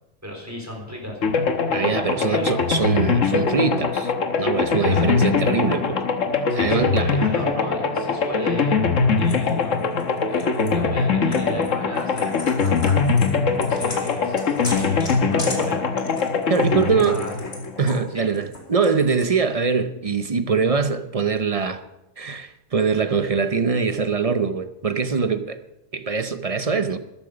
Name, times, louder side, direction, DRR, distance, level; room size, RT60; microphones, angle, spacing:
voice 1, 0.2-1.2 2.3-2.5 4.8-5.2 6.5-8.8 9.1-9.8 10.2-12.4 13.5-15.8 16.7-17.3 18.1-18.3, left 1 dB, 10° right, 4.0 m, -34 dB
sound 1, 1.2-18.1, left 4 dB, 70° left, 1.5 m, -22 dB
voice 2, 1.7-4.1 4.4-6.0 6.5-7.2 16.5-17.2 17.8-21.8 22.2-25.6 25.9-27.0, right 5 dB, 35° right, 0.6 m, -23 dB
sound 2, 9.3-10.7 11.3-11.7 12.0-18.0 18.3-19.4, left 2 dB, 50° left, 2.7 m, -36 dB
13.5 x 12.0 x 5.1 m
omnidirectional pair, 1.4 m